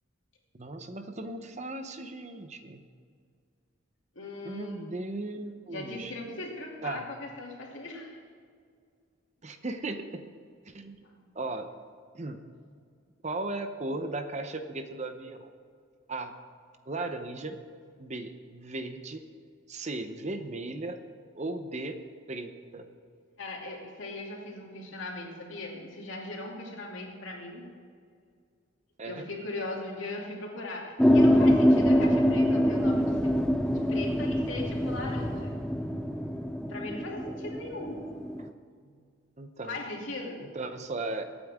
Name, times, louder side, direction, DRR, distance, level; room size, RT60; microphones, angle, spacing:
voice 1, 0.5-2.8 4.4-6.1 6.8-7.1 9.4-10.2 10.7-11.0 11.3-11.7 12.1-12.4 13.2-15.5 16.1-16.4 16.9-17.6 18.0-19.2 19.7-21.0 21.3-22.0 22.3-22.9 29.0-29.3 38.4-38.5 39.4-39.8 40.5-41.2, right 2 dB, 35° right, 8 dB, 0.8 m, -36 dB
voice 2, 4.1-4.8 5.7-8.2 11.0-11.1 23.4-27.6 29.0-33.3 33.7-35.6 36.7-38.0 38.8-39.1 39.7-40.4, left 2 dB, 70° left, -1 dB, 2.8 m, -39 dB
sound 1, 31.0-38.5, equal, 5° left, 0.5 m, -24 dB
22.5 x 9.0 x 3.6 m, 2.2 s
head